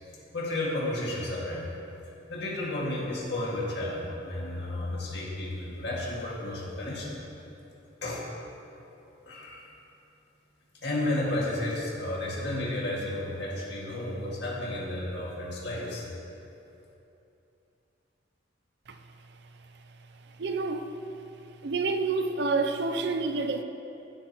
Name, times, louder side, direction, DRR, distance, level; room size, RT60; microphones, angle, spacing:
voice 1, 0.3-1.7 2.3-7.2 8.0-8.2 9.3-9.7 10.8-16.1, left 1 dB, 60° left, -4 dB, 2.1 m, -32 dB
voice 2, 20.4-20.9 21.6-23.6, right 3 dB, 60° right, 7 dB, 0.5 m, -28 dB
15.5 x 7.6 x 3.0 m, 2.9 s
head